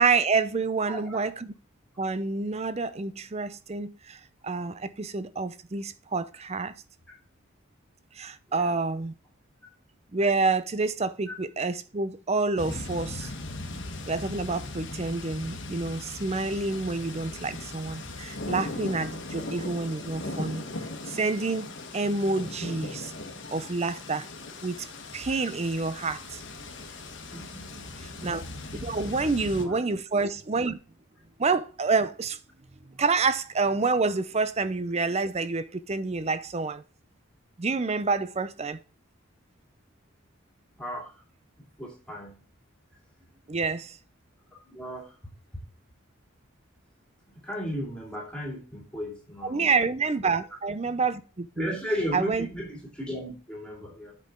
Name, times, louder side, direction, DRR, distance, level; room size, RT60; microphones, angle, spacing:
voice 1, 0.0-1.5 2.0-6.7 8.1-9.1 10.1-13.3 14.1-20.6 21.1-23.1 23.5-24.3 24.6-24.9 25.1-26.6 28.0-28.4 28.8-30.8 31.4-32.4 32.9-36.8 37.6-38.8 43.5-44.0 49.4-52.5, right 4 dB, 30° right, 0.5 m, -28 dB
voice 2, 0.9-1.2 8.5-8.8 11.3-11.4 27.3-27.9 29.0-29.1 29.6-29.8 40.8-41.1 41.8-42.4 44.7-45.1 47.4-49.7 50.2-50.3 51.6-54.1, equal, 5° left, 2.3 m, -35 dB
sound 1, 12.6-29.7, left 2 dB, 60° left, 1.4 m, -38 dB
8.3 x 5.5 x 3.7 m
head